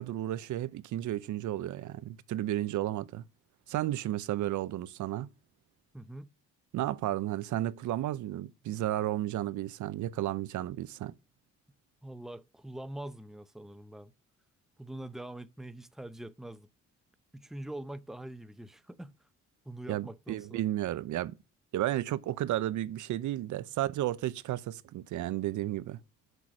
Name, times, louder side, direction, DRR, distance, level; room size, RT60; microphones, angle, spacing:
voice 1, 0.0-3.2 3.7-5.3 6.7-11.1 19.9-21.3 21.7-26.0, right 13 dB, 75° right, 0.7 m, -33 dB
voice 2, 5.9-6.3 12.0-14.1 14.8-16.7 17.3-19.1 19.6-20.6, right 1 dB, ahead, 0.7 m, -44 dB
6.7 x 6.3 x 7.4 m
cardioid pair, 90°, 30 cm